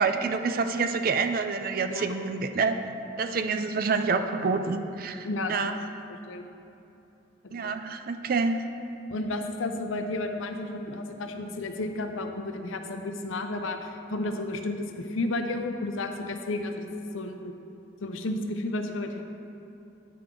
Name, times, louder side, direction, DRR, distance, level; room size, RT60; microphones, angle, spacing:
voice 1, 0.0-2.8 3.2-5.7 7.5-8.6, right 4 dB, 45° right, 7 dB, 0.4 m, -27 dB
voice 2, 5.2-5.9 6.3-6.5 7.4-7.7 9.1-16.9 17.1-17.5 18.0-19.2, left 2 dB, 85° left, 6 dB, 0.6 m, -32 dB
9.3 x 5.9 x 3.8 m, 2.8 s
head